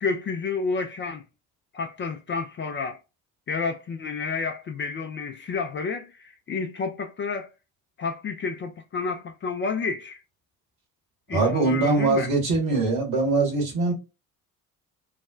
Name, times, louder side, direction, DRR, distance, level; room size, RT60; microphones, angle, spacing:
voice 1, 0.0-1.2 1.7-3.0 3.5-7.5 8.0-10.2 11.3-12.3, left 4 dB, 25° left, 0.4 m, -30 dB
voice 2, 11.3-13.9, right 3 dB, 70° right, 1.5 m, -22 dB
3.2 x 2.1 x 2.3 m
figure-of-eight pair, 50°, 47 cm